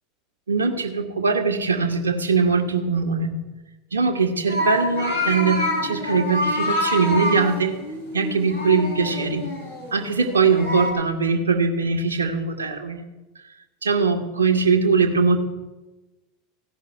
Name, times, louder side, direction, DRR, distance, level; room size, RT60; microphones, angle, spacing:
voice 1, 0.5-3.3 3.9-7.8 8.1-9.4 9.9-13.0 13.9-15.4, right 4 dB, 80° right, 4 dB, 1.3 m, -21 dB
sound 1, 4.5-10.9, left 1 dB, 85° left, 3.7 m, -27 dB
15.5 x 5.9 x 9.8 m, 1.1 s
figure-of-eight pair, 80°, 0 cm